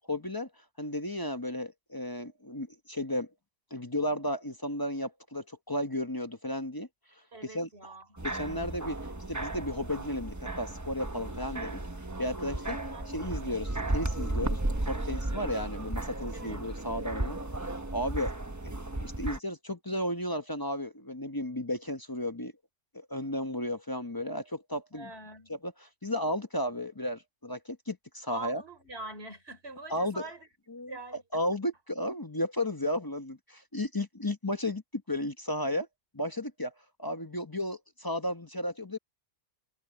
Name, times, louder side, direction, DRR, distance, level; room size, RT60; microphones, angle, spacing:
voice 1, 0.1-0.5 0.8-3.3 3.7-6.9 7.5-7.7 8.2-9.0 9.3-11.8 12.2-12.8 13.1-18.3 19.0-22.5 22.9-25.1 25.6-25.7 26.0-28.6 29.9-30.2 30.7-30.9 31.3-35.9 36.1-36.7 37.0-39.0, left 1 dB, 20° left, 0.9 m, -34 dB
voice 2, 7.3-8.2 12.7-13.1 16.3-16.7 24.9-25.5 28.3-30.5 30.8-31.4, right 3 dB, 55° right, 5.0 m, -44 dB
sound 1, 8.2-19.4, right 2 dB, 15° right, 1.0 m, -35 dB
omnidirectional pair, 1.3 m